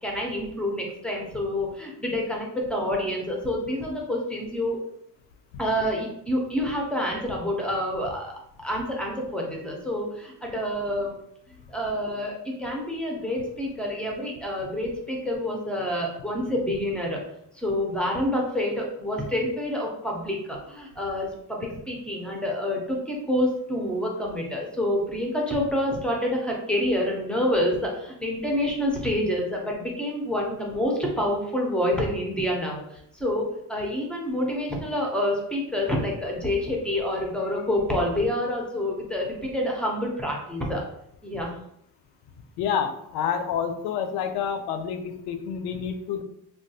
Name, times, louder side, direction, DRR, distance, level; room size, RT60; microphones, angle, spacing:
voice 1, 0.0-4.8 5.6-8.3 8.6-11.1 11.5-17.2 17.5-40.8 41.2-41.5, left 1 dB, 5° left, -1 dB, 0.5 m, -27 dB
voice 2, 42.6-46.2, left 7 dB, 80° left, 8 dB, 0.5 m, -28 dB
3.5 x 2.3 x 2.7 m, 0.74 s
cardioid pair, 155°, 40 cm